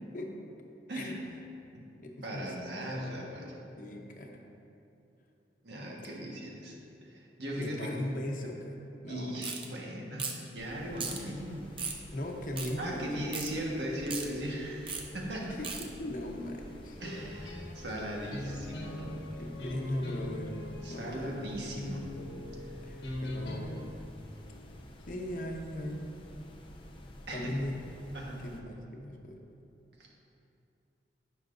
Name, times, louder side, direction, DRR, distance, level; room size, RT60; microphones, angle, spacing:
voice 1, 0.9-1.2 1.7-1.8 2.2-3.7 5.6-6.7 7.0-8.2 9.1-11.7 12.8-15.6 17.0-19.2 20.8-22.1 22.7-22.8 27.3-27.5 28.1-28.5 30.0-30.1, equal, 75° right, -2 dB, 1.5 m, -38 dB
voice 2, 2.0-2.4 3.8-4.3 7.6-8.7 9.0-9.5 12.1-13.3 15.5-15.7 16.0-17.0 19.4-21.4 22.8-23.9 25.0-26.1 27.3-28.2 28.4-29.4, left 1 dB, 50° left, 1 dB, 0.9 m, -39 dB
sound 1, 9.4-9.7 10.2-10.5 11.0-11.2 11.8-12.0 12.6-12.7 13.3-13.5 14.1-14.3 14.9-15.0 15.6-15.8, right 5 dB, 30° right, 0.7 m, -36 dB
sound 2, 10.6-28.6, left 1 dB, 30° left, 0.6 m, -50 dB
sound 3, 17.0-23.8, left 1 dB, 75° left, 1.0 m, -40 dB
15.5 x 5.7 x 2.6 m, 2.7 s
head